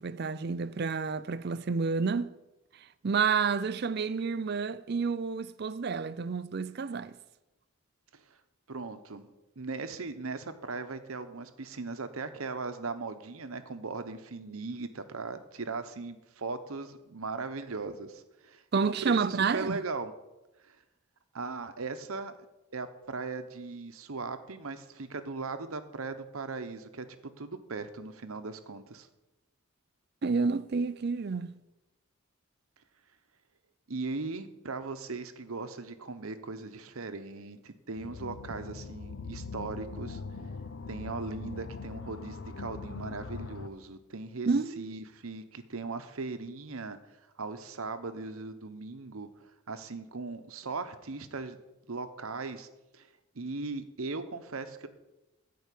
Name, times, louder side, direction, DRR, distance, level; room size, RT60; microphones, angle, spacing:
voice 1, 0.0-2.4 3.0-7.2 18.7-19.8 30.2-31.5 44.5-45.0, right 5 dB, 45° right, 0.4 m, -29 dB
voice 2, 8.7-9.3 9.6-20.1 20.6-20.8 21.3-22.3 22.7-29.1 33.9-40.2 40.9-44.5 44.8-49.3 49.7-51.6 51.9-52.7 52.9-53.1 53.3-54.9, right 3 dB, 75° right, 0.9 m, -38 dB
sound 1, 38.0-43.7, left 4 dB, 55° left, 0.6 m, -41 dB
14.0 x 4.7 x 8.4 m
head